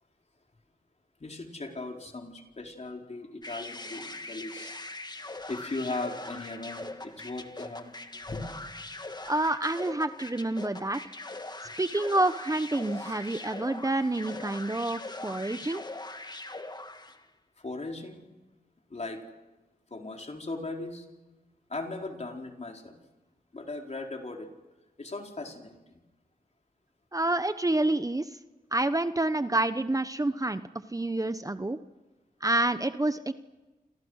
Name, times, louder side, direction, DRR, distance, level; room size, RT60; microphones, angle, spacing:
voice 1, 1.2-4.7 5.5-7.9 8.3-8.4 12.9-13.2 17.6-18.3 18.9-19.2 19.9-21.0 21.7-23.0 23.5-24.5 25.0-25.8, left 2 dB, 45° left, 2 dB, 4.4 m, -38 dB
sound 1, 3.4-17.2, left 2 dB, 25° left, 1.7 m, -41 dB
voice 2, 9.3-11.0 11.8-15.8 27.1-28.4 28.7-30.6 30.9-31.8 32.4-33.3, right 2 dB, 20° right, 11 dB, 1.0 m, -28 dB
29.5 x 27.5 x 6.5 m, 1.1 s
cardioid pair, 60°, 16 cm